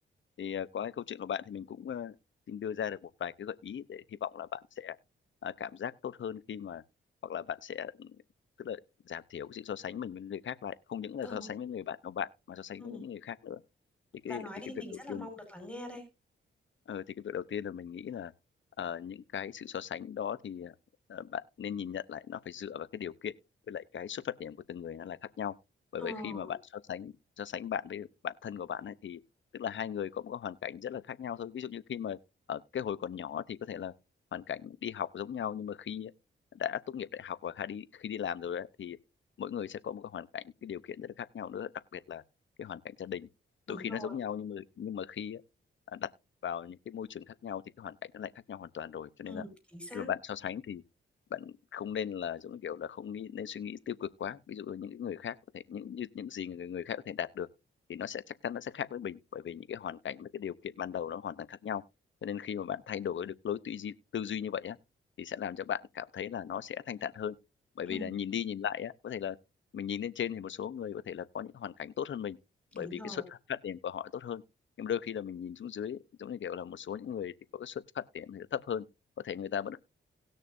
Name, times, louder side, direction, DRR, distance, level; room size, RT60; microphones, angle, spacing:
voice 1, 0.4-2.1 2.5-5.0 5.4-6.8 7.2-8.2 8.6-8.8 9.1-13.6 14.2-14.8 15.1-15.3 16.9-18.3 18.8-20.7 21.1-23.3 23.7-25.5 25.9-29.2 29.5-32.2 32.5-33.9 34.3-36.1 36.5-39.0 39.4-42.2 42.6-43.3 43.7-45.4 45.9-46.1 46.4-49.4 49.9-50.8 51.3-57.5 57.9-61.8 62.2-64.8 65.2-67.3 67.8-69.4 69.7-72.4 72.7-74.4 74.8-78.8 79.2-79.8, left 8 dB, 65° left, 0.9 m, -38 dB
voice 2, 14.2-16.0 26.0-26.5 43.7-44.2 49.3-50.1 67.8-68.1 72.8-73.2, left 1 dB, 5° left, 5.2 m, -43 dB
19.0 x 6.5 x 2.7 m
cardioid pair, 65°, 21 cm